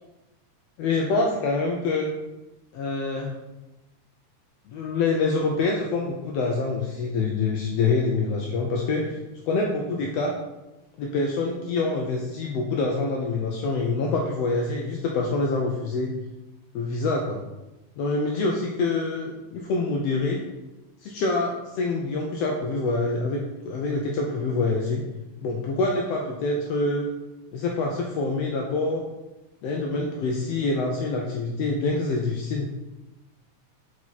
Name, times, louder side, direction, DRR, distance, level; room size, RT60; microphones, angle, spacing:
voice 1, 0.8-2.1 2.7-3.4 4.7-10.4 11.0-16.1 16.7-17.4 18.0-20.4 21.0-25.0 25.4-27.1 27.5-29.0 29.6-32.7, left 3 dB, 85° left, 0 dB, 1.4 m, -26 dB
5.6 x 4.9 x 4.0 m, 1.0 s
omnidirectional pair, 3.5 m